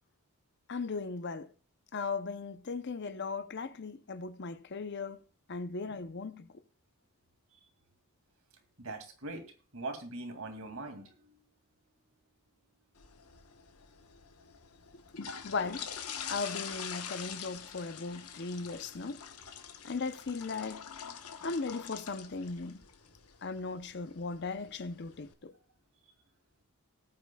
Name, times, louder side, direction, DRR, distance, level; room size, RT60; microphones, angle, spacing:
voice 1, 0.7-1.5 1.9-5.2 5.5-6.5 14.9-15.9 16.3-19.2 19.8-20.9 21.4-22.8 23.4-25.5, left 4 dB, 50° left, 0.6 m, -37 dB
voice 2, 8.8-9.4 9.7-11.4, right 2 dB, 65° right, 2.3 m, -41 dB
sound 1, 13.0-25.3, left 7 dB, 90° left, 1.1 m, -45 dB
19.0 x 8.6 x 2.3 m
head